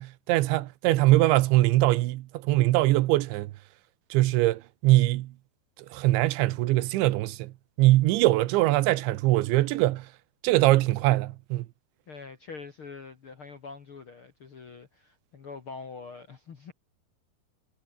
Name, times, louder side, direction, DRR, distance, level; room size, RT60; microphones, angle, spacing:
voice 1, 0.0-3.5 4.1-5.3 5.9-7.5 7.8-10.1 10.4-11.7, right 17 dB, 90° right, 3.3 m, -22 dB
voice 2, 12.1-16.7, left 4 dB, 55° left, 1.4 m, -44 dB
omnidirectional pair, 5.3 m